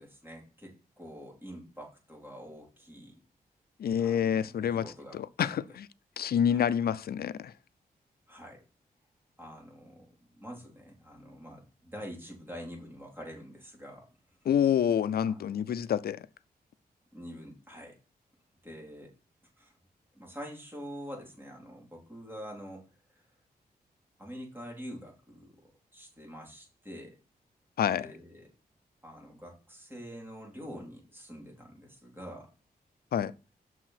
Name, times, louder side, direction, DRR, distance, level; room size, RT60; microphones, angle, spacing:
voice 1, 0.0-3.2 4.0-5.2 5.4-5.5 6.5-6.6 8.3-8.6 9.4-14.1 15.2-15.5 17.1-18.0 18.6-19.1 19.6-19.7 20.1-22.9 24.2-25.6 25.9-27.2 28.0-28.5 29.0-32.5, equal, 15° right, 3.9 m, -46 dB
voice 2, 3.8-5.9 6.2-7.5 14.5-16.3 27.8-28.1 33.1-33.3, left 9 dB, 75° left, 0.5 m, -28 dB
6.3 x 4.6 x 5.8 m
cardioid pair, 85°, 16 cm